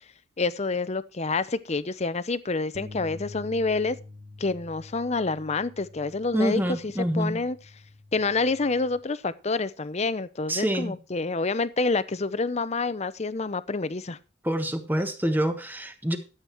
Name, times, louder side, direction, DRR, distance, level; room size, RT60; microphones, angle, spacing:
voice 1, 0.4-4.0 4.4-7.6 8.1-14.2, left 3 dB, 35° left, 0.7 m, -28 dB
sound 1, 2.7-9.0, left 2 dB, 80° right, 1.6 m, -46 dB
voice 2, 6.3-7.4 10.5-10.9 14.4-16.2, equal, 10° right, 1.4 m, -26 dB
12.5 x 8.1 x 4.5 m
head